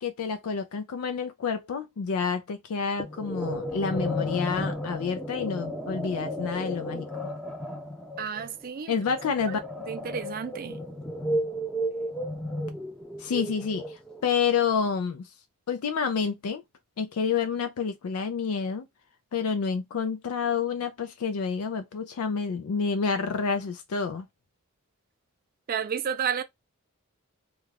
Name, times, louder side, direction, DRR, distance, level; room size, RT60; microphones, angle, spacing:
voice 1, 0.0-7.3 8.9-9.6 13.2-15.3 15.7-16.6 17.0-18.8 19.3-24.3, left 6 dB, 85° left, 0.4 m, -29 dB
sound 1, 3.0-14.3, equal, 5° left, 0.6 m, -33 dB
voice 2, 8.2-9.0 9.5-9.6 9.9-10.8 25.7-26.4, right 7 dB, 40° right, 0.4 m, -31 dB
2.4 x 2.2 x 3.2 m
head